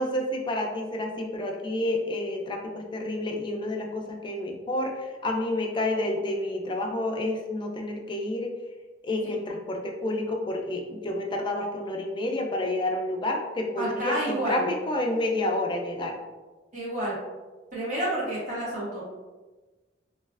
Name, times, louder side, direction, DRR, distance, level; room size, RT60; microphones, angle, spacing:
voice 1, 0.0-8.6 9.0-16.2, left 1 dB, 25° left, 2 dB, 0.4 m, -29 dB
voice 2, 13.8-14.7 16.7-17.1 17.7-19.1, right 1 dB, 45° right, -8 dB, 1.4 m, -29 dB
3.0 x 2.3 x 2.4 m, 1.2 s
head